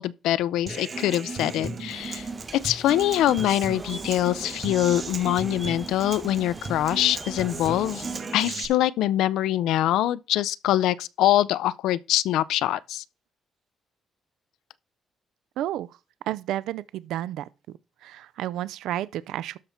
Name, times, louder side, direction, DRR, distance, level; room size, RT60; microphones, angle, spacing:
voice 1, 0.0-2.3 2.5-8.1 8.3-13.0, left 13 dB, 90° left, 0.4 m, -24 dB
Human voice / Acoustic guitar, 0.7-8.7, right 4 dB, 40° right, 1.9 m, -35 dB
sound 1, 1.9-8.2, right 1 dB, 10° right, 1.0 m, -43 dB
voice 2, 15.6-15.9 16.3-17.5 18.0-19.6, right 13 dB, 85° right, 0.4 m, -31 dB
12.5 x 5.6 x 4.4 m
cardioid pair, 90°, 0 cm